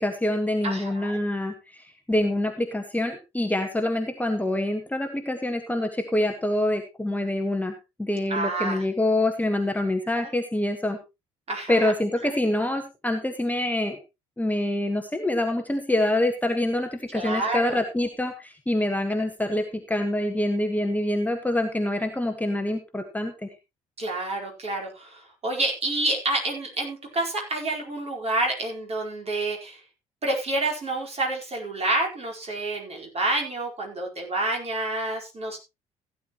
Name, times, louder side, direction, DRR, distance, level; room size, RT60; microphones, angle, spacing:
voice 1, 0.0-7.7 8.0-11.0 11.7-14.0 14.4-18.3 18.7-23.5, left 1 dB, 10° left, 5 dB, 1.5 m, -26 dB
voice 2, 0.6-1.2 8.3-8.8 10.1-10.3 11.5-11.9 17.1-17.8 24.0-29.8 30.2-35.6, right 2 dB, 35° right, 1 dB, 4.6 m, -28 dB
16.0 x 9.9 x 3.1 m, 0.25 s
figure-of-eight pair, 50°, 18 cm